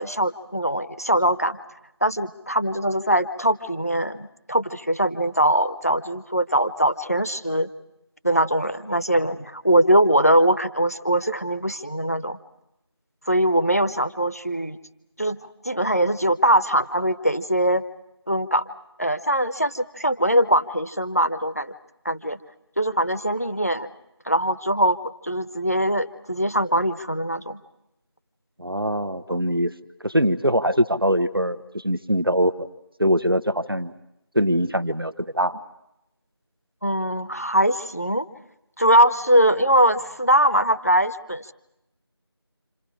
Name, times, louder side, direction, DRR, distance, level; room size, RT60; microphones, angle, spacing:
voice 1, 0.0-1.6 2.0-7.7 8.2-12.4 13.3-14.8 15.2-15.4 15.6-17.8 18.3-18.6 19.0-21.7 22.0-22.4 22.8-23.9 24.3-25.0 25.2-27.6 29.3-29.4 36.8-38.2 38.8-41.5, right 1 dB, 35° left, 13 dB, 0.9 m, -21 dB
voice 2, 28.6-29.7 30.0-32.7 33.0-33.9 34.3-35.6, equal, 55° right, 12 dB, 1.3 m, -22 dB
29.5 x 27.0 x 4.9 m, 0.85 s
figure-of-eight pair, 180°, 14 cm